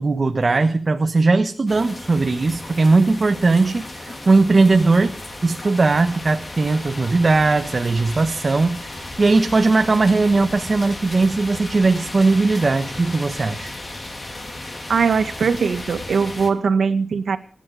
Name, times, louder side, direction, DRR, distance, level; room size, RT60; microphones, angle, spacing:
voice 1, 0.0-5.1 5.4-13.7, right 3 dB, 35° right, 6 dB, 1.2 m, -18 dB
sound 1, 1.7-16.5, left 2 dB, 30° left, 3.4 m, -35 dB
voice 2, 14.9-17.4, right 5 dB, 80° right, 9 dB, 2.0 m, -20 dB
25.5 x 10.5 x 5.0 m, 0.43 s
wide cardioid pair, 160°, 0 cm